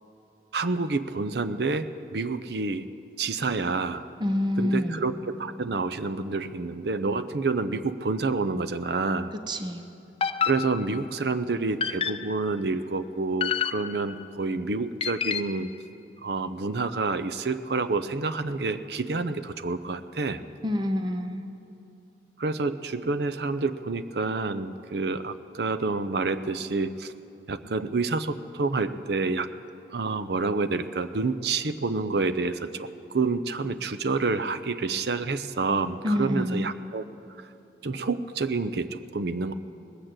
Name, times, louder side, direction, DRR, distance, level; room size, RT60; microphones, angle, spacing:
voice 1, 0.5-2.9 3.2-4.1 4.6-9.3 10.5-15.7 16.2-20.4 22.4-27.1 27.5-29.5 29.9-37.0 37.8-39.5, right 3 dB, 65° right, 10 dB, 0.6 m, -28 dB
voice 2, 4.2-5.1 9.5-9.8 20.6-21.4 36.0-36.7, left 1 dB, 25° right, 7 dB, 0.7 m, -27 dB
sound 1, 10.2-11.2 11.8-12.5 13.4-14.2 15.0-15.7, left 7 dB, 30° left, 0.3 m, -29 dB
19.5 x 8.8 x 7.8 m, 2.8 s
head